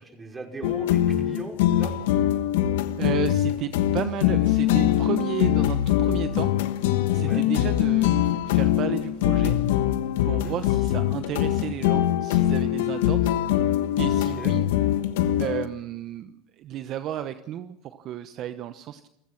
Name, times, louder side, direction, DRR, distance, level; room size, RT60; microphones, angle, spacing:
voice 1, 0.0-1.9 7.1-7.4 10.2-10.6 14.2-14.5, right 3 dB, 20° right, 2 dB, 5.4 m, -39 dB
sound 1, 0.6-15.7, left 12 dB, 85° left, 1.3 m, -23 dB
voice 2, 3.0-6.5 7.1-9.6 10.2-13.3 14.0-14.6 15.4-19.1, right 11 dB, 50° right, 10 dB, 1.0 m, -33 dB
29.0 x 15.5 x 5.9 m, 0.81 s
supercardioid pair, 100°, 0 cm